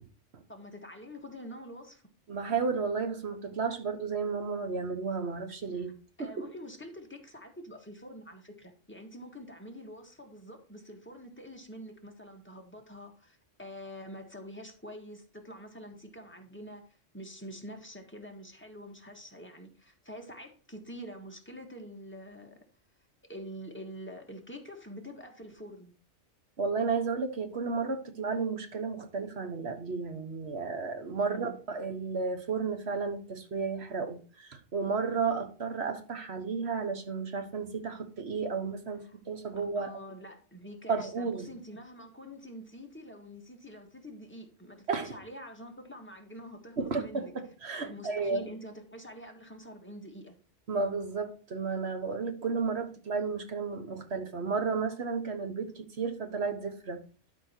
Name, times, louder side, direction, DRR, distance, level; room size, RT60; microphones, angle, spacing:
voice 1, 0.5-2.0 5.7-5.8 6.2-22.6 23.2-25.9 31.2-31.6 39.0-39.1 39.6-47.3 47.8-50.4, equal, 10° left, 1.6 m, -46 dB
voice 2, 2.3-5.9 6.2-6.5 26.6-39.9 40.9-41.5 44.9-45.1 46.8-48.4 50.7-57.0, right 4 dB, 60° right, 1.5 m, -33 dB
12.0 x 4.5 x 4.5 m
omnidirectional pair, 1.2 m